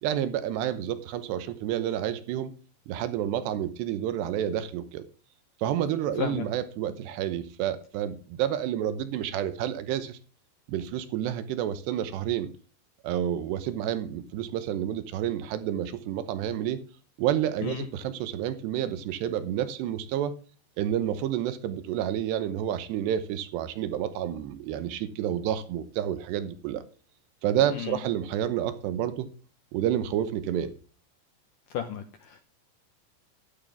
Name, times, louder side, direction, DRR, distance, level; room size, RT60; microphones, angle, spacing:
voice 1, 0.0-2.5 2.9-5.0 5.6-10.2 10.7-12.5 13.0-16.8 17.2-20.4 20.8-26.8 27.4-29.3 29.7-30.7, right 10 dB, 80° right, 3.0 m, -29 dB
voice 2, 27.7-28.0 31.7-32.4, left 9 dB, 70° left, 2.0 m, -33 dB
13.0 x 12.5 x 3.5 m
omnidirectional pair, 5.1 m